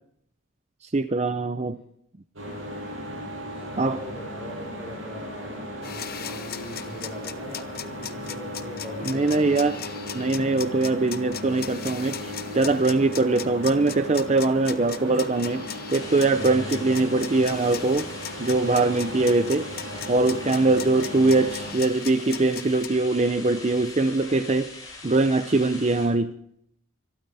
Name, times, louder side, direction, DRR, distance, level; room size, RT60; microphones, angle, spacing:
voice 1, 0.9-1.8 3.8-4.0 9.0-9.8 10.1-18.1 18.4-19.7 20.1-24.7 25.0-26.3, right 3 dB, 35° right, 11 dB, 0.6 m, -22 dB
sound 1, 2.4-21.7, equal, 80° right, 7.7 m, -36 dB
voice 2, 3.3-9.6 16.3-17.3, left 1 dB, 5° right, -1 dB, 4.8 m, -41 dB
sound 2, 5.8-22.9, left 10 dB, 45° left, 0.9 m, -38 dB
sound 3, 15.9-26.1, left 3 dB, 20° left, 7.1 m, -42 dB
24.5 x 13.5 x 3.5 m, 0.70 s
head